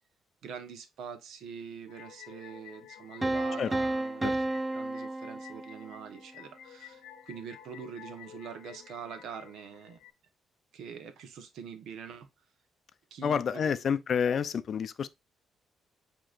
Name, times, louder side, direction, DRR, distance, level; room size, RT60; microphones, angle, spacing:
voice 1, 0.4-4.4 4.7-10.0 10.7-12.3 13.1-13.8, right 7 dB, 80° right, 0.9 m, -44 dB
sound 1, 1.9-10.1, left 11 dB, 90° left, 0.7 m, -52 dB
sound 2, 3.2-6.1, right 2 dB, 15° right, 0.3 m, -32 dB
voice 2, 13.2-15.1, left 7 dB, 55° left, 0.4 m, -29 dB
7.6 x 2.9 x 2.4 m
cardioid pair, 90°, 0 cm